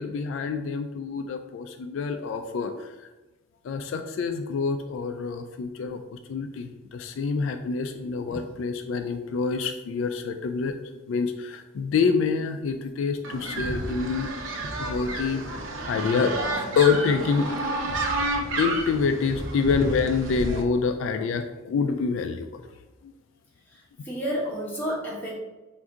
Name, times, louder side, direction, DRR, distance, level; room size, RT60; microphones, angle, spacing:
voice 1, 0.0-2.7 3.6-6.0 6.3-15.5 15.9-16.3 16.8-17.5 18.6-22.5, left 5 dB, 70° left, 7 dB, 0.3 m, -26 dB
sound 1, 13.2-20.6, right 2 dB, 70° right, 0.6 m, -30 dB
voice 2, 23.7-25.3, equal, 10° left, -6 dB, 1.1 m, -31 dB
3.6 x 2.6 x 4.5 m, 1.1 s
head